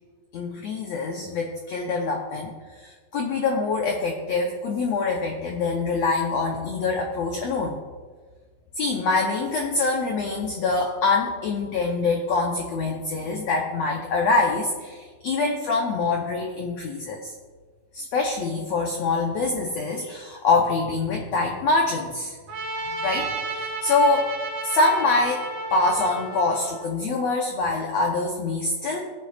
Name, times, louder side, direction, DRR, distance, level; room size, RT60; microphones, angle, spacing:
voice 1, 0.3-2.5 3.1-7.8 8.8-17.3 17.9-22.3 23.0-23.3 23.5-24.3 24.6-25.4 25.7-29.1, left 3 dB, 85° left, 1 dB, 1.5 m, -24 dB
Trumpet, 22.5-26.9, right 2 dB, 85° right, 1.1 m, -32 dB
18.0 x 8.6 x 2.4 m, 1.5 s
omnidirectional pair, 4.1 m